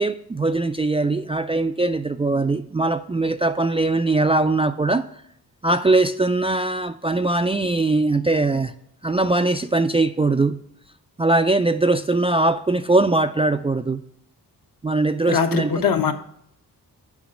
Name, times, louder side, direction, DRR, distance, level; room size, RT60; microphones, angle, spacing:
voice 1, 0.0-5.1 5.6-8.7 9.0-10.6 11.2-14.0 14.8-15.7, right 2 dB, 15° right, 0.3 m, -21 dB
voice 2, 15.3-16.1, left 6 dB, 60° left, 1.0 m, -21 dB
7.2 x 5.0 x 6.3 m
cardioid pair, 80°, 39 cm